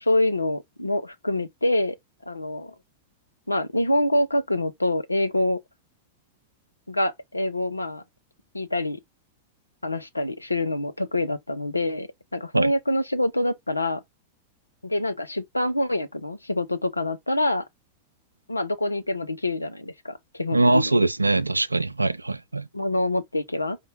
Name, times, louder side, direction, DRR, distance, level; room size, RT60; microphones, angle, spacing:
voice 1, 0.0-2.0 2.3-2.7 3.5-5.6 6.9-8.0 8.5-9.0 9.8-14.0 14.8-17.6 18.5-20.9 22.0-22.1 22.7-23.8, left 1 dB, 85° left, 0.6 m, -26 dB
voice 2, 20.5-22.7, right 2 dB, 85° right, 0.3 m, -22 dB
5.3 x 2.4 x 3.8 m
figure-of-eight pair, 90°, 0 cm